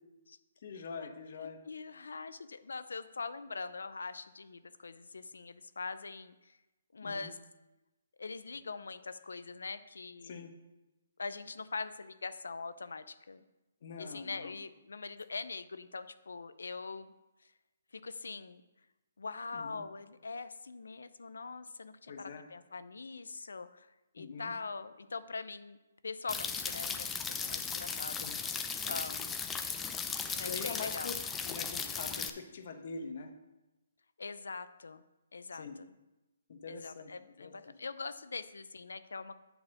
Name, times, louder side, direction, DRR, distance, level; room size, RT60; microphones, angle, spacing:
voice 1, 0.6-1.6 7.0-7.3 10.2-10.5 13.8-14.5 19.5-19.8 22.1-22.5 24.2-24.5 28.2-28.4 30.4-31.1 31.4-33.3 35.5-35.8 36.5-37.1 37.4-37.7, left 5 dB, 55° left, 5 dB, 1.1 m, -44 dB
voice 2, 1.4-6.6 6.9-7.4 8.2-10.5 11.2-13.4 14.0-17.1 17.9-18.6 19.2-25.8 26.0-28.3 28.8-29.3 30.3-31.2 34.2-35.0 35.3-35.9 36.7-39.3, left 4 dB, 85° left, 13 dB, 0.5 m, -43 dB
sound 1, 26.3-32.3, left 5 dB, 10° left, 0.5 m, -37 dB
8.9 x 4.1 x 6.2 m, 1.0 s
hypercardioid pair, 150°, 0 cm